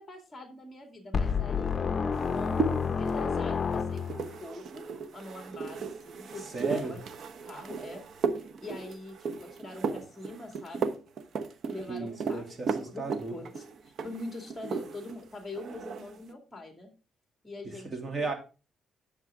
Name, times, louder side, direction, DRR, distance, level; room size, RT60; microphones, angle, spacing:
voice 1, 0.0-4.8 5.1-7.0 7.4-8.0 8.6-11.0 11.7-16.9 17.4-18.3, left 2 dB, 15° left, 4 dB, 2.3 m, -44 dB
sound 1, 1.1-4.4, left 6 dB, 40° left, 0.7 m, -29 dB
sound 2, 2.1-15.2 15.5-16.2, right 5 dB, 60° right, 1.0 m, -36 dB
voice 2, 6.5-7.0 11.9-13.4 17.6-18.3, right 3 dB, 35° right, 4 dB, 2.6 m, -35 dB
10.0 x 6.6 x 3.6 m, 0.32 s
cardioid pair, 90°, 0 cm